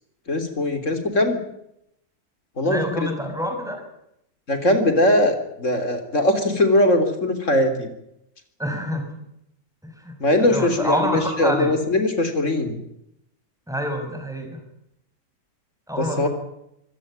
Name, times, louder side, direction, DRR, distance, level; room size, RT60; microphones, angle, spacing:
voice 1, 0.3-1.4 2.6-3.1 4.5-7.9 10.2-12.8 16.0-16.3, left 1 dB, 55° left, 8 dB, 3.9 m, -20 dB
voice 2, 2.6-3.8 8.6-9.1 9.8-11.7 13.7-14.6 15.9-16.3, equal, ahead, 4 dB, 5.8 m, -27 dB
24.5 x 17.0 x 8.9 m, 0.79 s
omnidirectional pair, 1.6 m